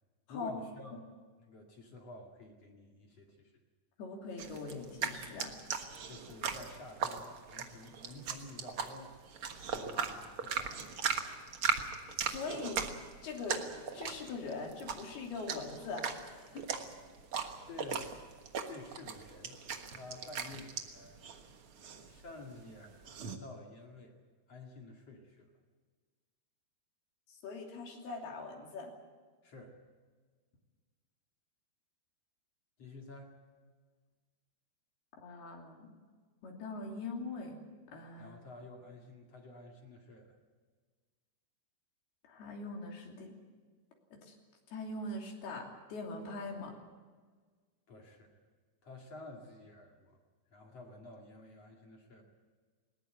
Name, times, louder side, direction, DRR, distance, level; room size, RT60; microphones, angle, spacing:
voice 1, 0.3-1.0 1.4-3.6 6.1-9.2 9.7-11.6 17.7-18.1 18.6-19.6 19.9-21.2 22.1-24.1 24.5-25.5 29.4-29.8 32.8-33.3 38.2-40.4 47.9-48.3 48.8-50.2 50.5-52.2, left 2 dB, 45° left, 1 dB, 2.9 m, -51 dB
voice 2, 4.0-5.5 9.9-10.2 12.2-12.8 13.2-16.7 27.4-28.9 35.2-36.0 36.4-37.6 37.9-38.4 42.3-43.3 44.1-44.3 44.7-46.7, left 3 dB, 70° left, 1 dB, 4.9 m, -42 dB
sound 1, 4.4-23.4, right 6 dB, 65° right, 1.3 m, -39 dB
20.0 x 19.5 x 8.0 m, 1.5 s
omnidirectional pair, 4.7 m